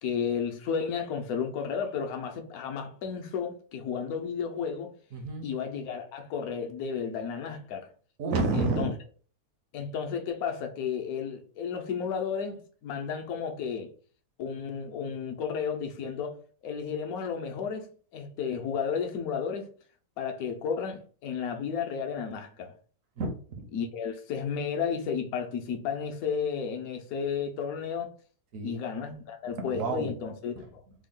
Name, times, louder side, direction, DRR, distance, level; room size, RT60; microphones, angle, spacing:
voice 1, 0.0-4.9 5.4-7.9 8.5-8.9 9.7-13.9 14.4-16.4 16.6-17.9 18.1-19.7 20.2-22.7 23.7-28.1 28.6-30.8, left 6 dB, 65° left, 1.1 m, -33 dB
voice 2, 5.1-5.5 8.2-8.9 23.2-23.7 28.5-28.7 29.7-30.2 30.6-30.7, right 3 dB, 60° right, 1.0 m, -29 dB
3.4 x 2.3 x 3.6 m
omnidirectional pair, 1.8 m